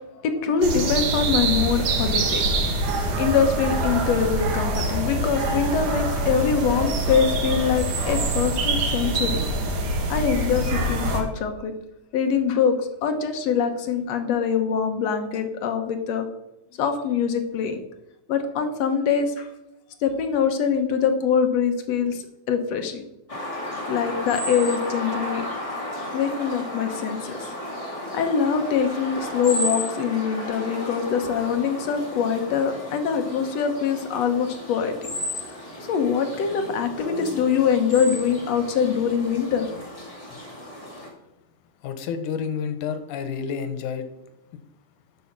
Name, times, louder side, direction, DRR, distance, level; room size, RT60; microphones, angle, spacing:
voice 1, 0.1-2.4 3.0-9.4 10.1-11.8 12.1-16.3 16.8-17.8 18.3-19.5 20.0-23.0 23.9-25.5 26.1-27.4 28.1-34.9 35.9-39.7, left 6 dB, 65° left, 6 dB, 2.1 m, -24 dB
sound 1, 0.6-11.2, right 2 dB, 90° right, 3.2 m, -25 dB
sound 2, 23.3-41.1, left 1 dB, 10° left, 2.0 m, -34 dB
voice 2, 41.8-44.1, left 6 dB, 85° left, 10 dB, 2.5 m, -29 dB
11.5 x 6.4 x 6.0 m, 0.88 s
omnidirectional pair, 3.5 m